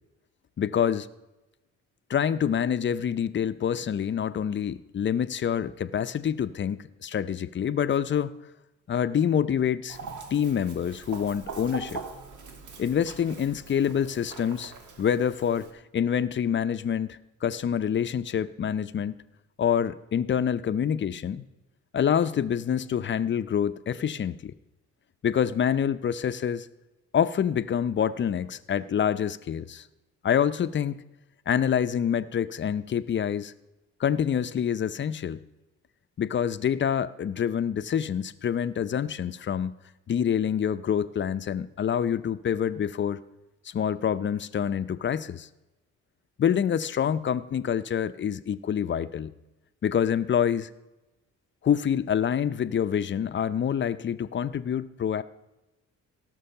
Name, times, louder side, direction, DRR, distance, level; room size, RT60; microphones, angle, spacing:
voice 1, 0.6-1.1 2.1-8.3 8.9-10.0 10.3-12.0 12.8-14.7 15.0-19.1 19.6-21.4 21.9-24.5 25.2-26.7 27.1-29.8 30.2-31.0 31.5-33.5 34.0-35.4 36.2-39.7 40.1-43.2 43.7-45.5 46.4-49.3 49.8-50.7 51.6-55.2, left 8 dB, 40° left, 13 dB, 0.6 m, -26 dB
Chicken rooster, 9.9-15.7, right 4 dB, 75° right, 1.7 m, -42 dB
17.0 x 6.2 x 5.7 m, 1.0 s
cardioid pair, 90°, 30 cm